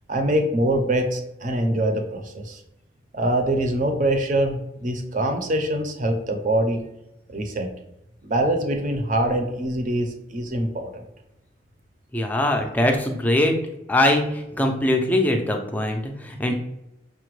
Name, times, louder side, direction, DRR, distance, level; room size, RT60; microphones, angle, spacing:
voice 1, 0.1-2.6 3.1-6.8 7.3-7.7 8.2-11.0, right 1 dB, 40° right, 4 dB, 0.5 m, -24 dB
voice 2, 12.1-13.5 13.9-16.5, left 1 dB, 10° left, 3 dB, 0.4 m, -22 dB
5.7 x 2.2 x 3.1 m, 0.86 s
head